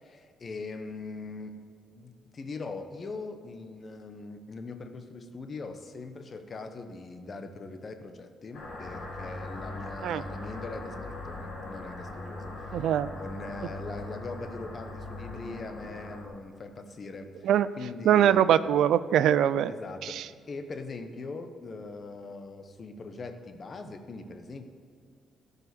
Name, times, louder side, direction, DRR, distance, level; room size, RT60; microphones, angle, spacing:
voice 1, 0.0-1.6 1.9-12.9 13.1-17.5 17.8-18.5 19.7-24.6, left 3 dB, 40° left, 7 dB, 1.1 m, -41 dB
sound 1, 8.5-16.3, left 2 dB, 60° left, 2.5 m, -40 dB
voice 2, 12.7-13.1 17.4-17.7 18.0-19.7 20.0-20.2, right 10 dB, 75° right, 16 dB, 0.4 m, -22 dB
12.5 x 5.4 x 8.3 m, 2.3 s
cardioid pair, 90°, 0 cm